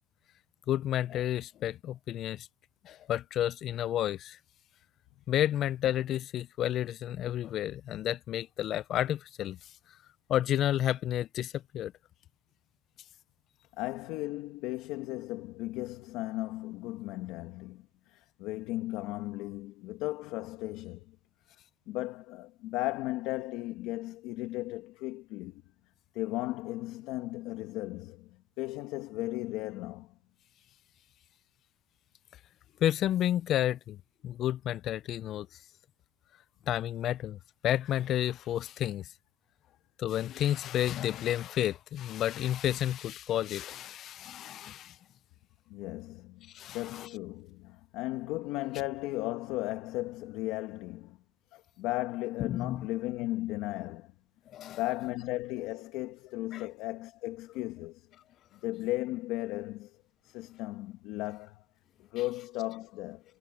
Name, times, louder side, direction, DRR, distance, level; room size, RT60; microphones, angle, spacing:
voice 1, 0.7-2.5 2.8-4.4 5.3-9.6 10.3-11.9 32.8-34.0 34.2-35.5 36.7-39.1 40.0-45.0 46.5-47.1 52.4-52.9 54.5-54.8 56.5-56.6, left 12 dB, 40° left, 0.3 m, -31 dB
voice 2, 13.8-21.1 21.9-25.6 26.1-28.3 28.6-30.1 45.7-51.2 51.5-54.1 54.7-58.1 58.6-60.0 60.2-61.6 62.1-63.2, left 18 dB, 60° left, 1.5 m, -36 dB
cardioid pair, 145°, 0 cm